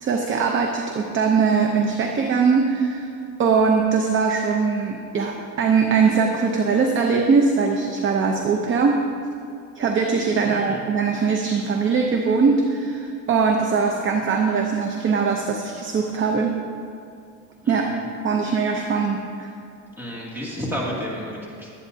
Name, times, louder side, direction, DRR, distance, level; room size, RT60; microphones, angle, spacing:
voice 1, 0.0-3.1 3.4-9.0 9.8-16.5 17.7-17.9 18.2-19.5, right 5 dB, 30° right, 2 dB, 0.7 m, -21 dB
voice 2, 10.4-10.8 17.6-18.0 20.0-21.7, equal, 5° right, -5 dB, 2.4 m, -31 dB
22.5 x 8.7 x 2.8 m, 2.5 s
cardioid pair, 155°, 41 cm